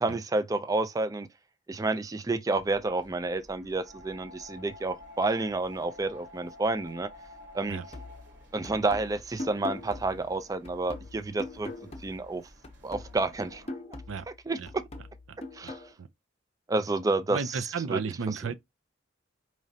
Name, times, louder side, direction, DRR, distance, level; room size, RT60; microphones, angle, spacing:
voice 1, 0.0-1.3 1.7-7.1 7.5-7.8 8.5-11.7 12.0-12.4 12.8-13.6 14.5-14.8 15.5-15.8 16.7-17.6 17.9-18.0 18.3-18.5, right 2 dB, 20° right, 0.3 m, -30 dB
sound 1, 2.5-13.7, left 1 dB, 60° right, 1.5 m, -52 dB
sound 2, 7.9-12.4 12.6-15.9, left 2 dB, 30° left, 0.7 m, -42 dB
voice 2, 17.3-18.5, right 5 dB, 90° right, 0.5 m, -33 dB
4.9 x 3.1 x 2.7 m
head